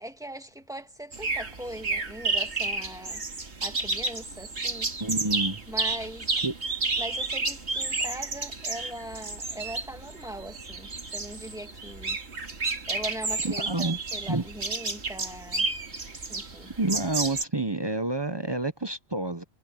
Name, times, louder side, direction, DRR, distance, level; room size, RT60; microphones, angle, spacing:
voice 1, 0.0-3.2 3.6-4.9 5.7-6.3 7.0-12.2 12.9-15.7 16.3-16.7, right 1 dB, 5° right, 2.1 m, -40 dB
sound 1, 1.1-17.4, right 3 dB, 75° right, 2.6 m, -31 dB
voice 2, 5.0-5.6 6.4-6.5 13.4-14.0 14.3-14.4 16.8-19.4, right 2 dB, 25° right, 0.9 m, -28 dB
omnidirectional pair, 1.1 m